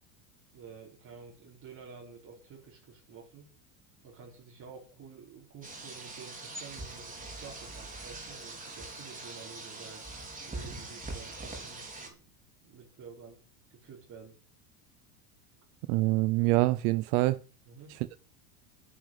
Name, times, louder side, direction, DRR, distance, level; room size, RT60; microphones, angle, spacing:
voice 1, 0.5-3.5 4.0-10.1 10.5-12.3 12.6-13.4 13.7-14.3 17.7-18.0, right 5 dB, 35° right, -3 dB, 4.9 m, -50 dB
sound 1, 5.6-12.1, right 2 dB, 15° right, 4.7 m, -43 dB
voice 2, 15.9-17.4 17.9-18.2, right 19 dB, 65° right, 15 dB, 0.9 m, -26 dB
10.5 x 9.2 x 8.0 m, 0.38 s
supercardioid pair, 135°, 49 cm